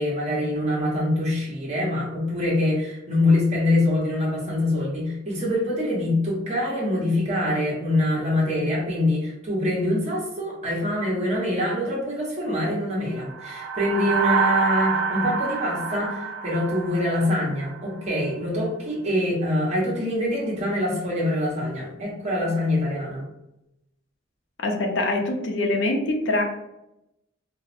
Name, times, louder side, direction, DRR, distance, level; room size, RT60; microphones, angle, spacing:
voice 1, 0.0-23.2, left 1 dB, 35° right, -4 dB, 1.0 m, -24 dB
sound 1, 13.2-17.8, right 5 dB, 60° right, 0.6 m, -27 dB
voice 2, 24.6-26.4, left 2 dB, 70° left, 2 dB, 0.5 m, -24 dB
4.0 x 2.0 x 2.5 m, 0.86 s
head